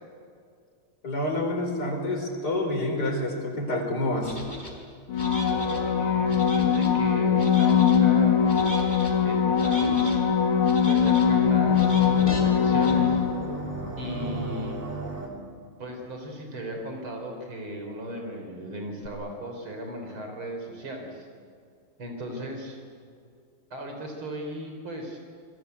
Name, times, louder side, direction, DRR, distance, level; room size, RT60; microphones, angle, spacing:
voice 1, 1.0-4.4, left 1 dB, 50° left, 2 dB, 5.1 m, -28 dB
sound 1, 4.2-4.7 5.1-5.8 6.3-6.9 7.4-8.0 8.5-9.1 9.5-10.2 10.6-11.3 11.7-12.4 12.8-12.9, equal, 20° left, 4.5 m, -39 dB
sound 2, 5.1-13.7 19.1-19.2, left 7 dB, 90° left, 2.5 m, -22 dB
voice 2, 5.5-9.0 9.2-10.2 10.8-13.2 14.0-14.8 15.8-21.3 22.0-22.8 23.7-25.2, equal, 75° right, 3 dB, 4.6 m, -37 dB
sound 3, 11.1-15.3, right 3 dB, 30° right, 3.8 m, -36 dB
28.0 x 21.5 x 8.3 m, 2.3 s
omnidirectional pair, 2.3 m